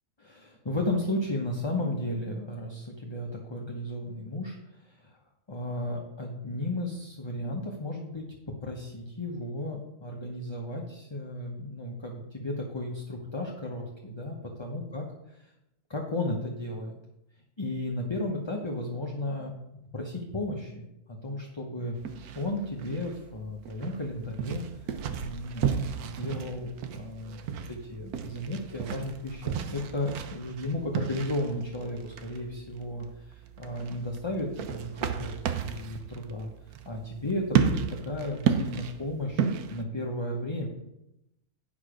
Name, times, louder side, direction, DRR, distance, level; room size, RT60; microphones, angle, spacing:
voice 1, 0.2-5.2 5.5-15.1 15.4-15.5 15.9-17.0 17.6-19.5 19.9-20.9 21.2-21.9 22.3-24.6 25.2-27.4 27.7-36.5 36.8-40.7, left 1 dB, 20° left, 0 dB, 0.8 m, -34 dB
sound 1, 22.0-39.8, right 7 dB, 75° right, 1.2 m, -33 dB
8.7 x 6.2 x 5.0 m, 0.86 s
omnidirectional pair, 1.6 m